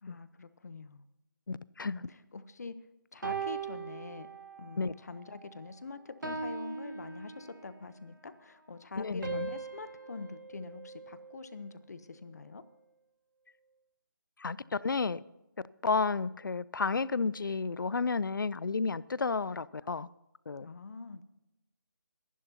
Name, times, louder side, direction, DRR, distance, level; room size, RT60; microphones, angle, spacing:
voice 1, 0.0-1.0 1.9-2.7 3.1-4.3 4.6-12.6 20.6-21.2, left 4 dB, 50° left, 0.9 m, -45 dB
voice 2, 1.5-1.9 4.8-4.9 9.0-9.5 14.4-15.2 15.8-20.1 20.5-20.7, left 4 dB, 70° left, 0.5 m, -32 dB
sound 1, 3.2-4.8 5.2-5.5 6.2-7.9 9.2-11.6, right 5 dB, 65° right, 2.3 m, -40 dB
22.0 x 11.0 x 2.8 m
figure-of-eight pair, 170°, 11 cm